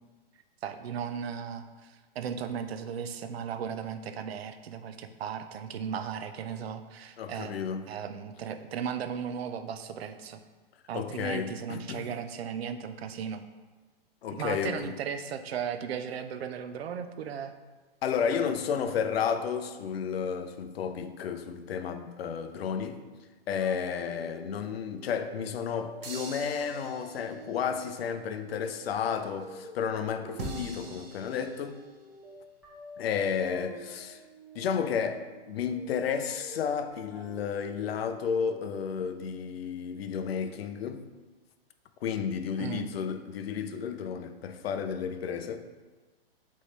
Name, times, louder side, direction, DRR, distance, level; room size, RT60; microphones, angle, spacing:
voice 1, 0.6-7.5 7.9-10.4 10.9-13.4 14.3-17.5 42.6-42.9, right 7 dB, 85° right, 0.5 m, -36 dB
voice 2, 7.2-7.8 10.9-12.1 14.2-14.9 18.0-23.0 23.5-31.8 33.0-34.2 34.6-41.0 42.0-45.7, left 7 dB, 80° left, 0.5 m, -32 dB
sound 1, 23.6-39.0, right 1 dB, 5° right, 0.7 m, -49 dB
sound 2, 26.0-27.6 30.4-32.0, right 4 dB, 70° right, 0.9 m, -42 dB
3.4 x 3.1 x 4.0 m
hypercardioid pair, 135°, 30 cm